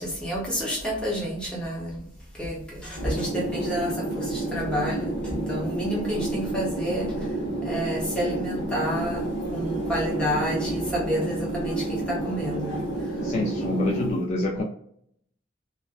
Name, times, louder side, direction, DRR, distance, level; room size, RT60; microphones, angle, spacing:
voice 1, 0.0-2.1 2.3-7.3 7.6-13.2, equal, 5° left, -5 dB, 0.7 m, -30 dB
sound 1, 3.0-14.1, right 2 dB, 75° left, 1.3 m, -30 dB
voice 2, 13.2-14.6, left 1 dB, 35° left, -3 dB, 0.3 m, -26 dB
2.5 x 2.1 x 2.3 m, 0.68 s
head